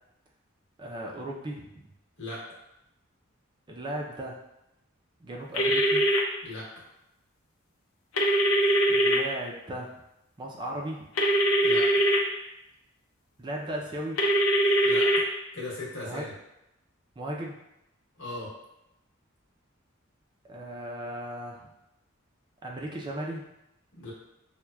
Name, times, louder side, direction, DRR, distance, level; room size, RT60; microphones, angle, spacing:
voice 1, 0.8-1.8 3.7-4.4 5.2-6.0 8.9-10.0 10.4-11.1 13.4-14.2 16.0-16.3 17.2-17.6 20.4-21.7 22.6-23.4, right 1 dB, 20° right, -1 dB, 0.4 m, -36 dB
sound 1, 5.5-6.2 8.2-9.2 11.2-12.2 14.2-15.2, right 1 dB, 85° left, 0.6 m, -22 dB
voice 2, 6.4-6.8 11.6-12.0 14.8-15.3 15.5-16.3 18.2-18.5 24.0-24.1, left 2 dB, 65° left, -5 dB, 1.2 m, -38 dB
5.8 x 2.1 x 2.2 m, 0.87 s
head